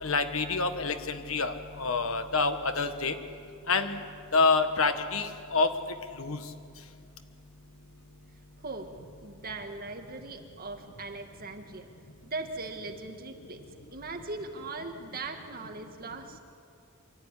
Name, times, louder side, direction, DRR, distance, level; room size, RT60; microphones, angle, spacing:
voice 1, 0.0-3.2 3.7-4.0 4.3-5.7 6.2-6.4, left 4 dB, 70° left, 8 dB, 1.6 m, -27 dB
voice 2, 8.6-8.9 9.2-11.9 12.2-13.7 13.9-16.4, right 3 dB, 45° right, 4 dB, 2.0 m, -39 dB
25.5 x 14.5 x 9.9 m, 2.5 s
head